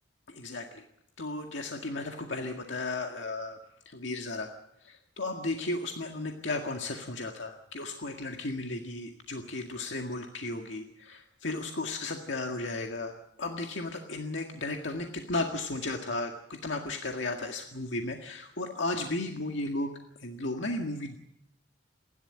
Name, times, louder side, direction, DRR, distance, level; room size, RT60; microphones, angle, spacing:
voice 1, 0.3-0.8 1.2-3.6 3.9-4.5 4.8-19.9 20.2-21.2, left 2 dB, 80° left, 3 dB, 1.9 m, -34 dB
28.5 x 12.0 x 8.8 m, 0.76 s
head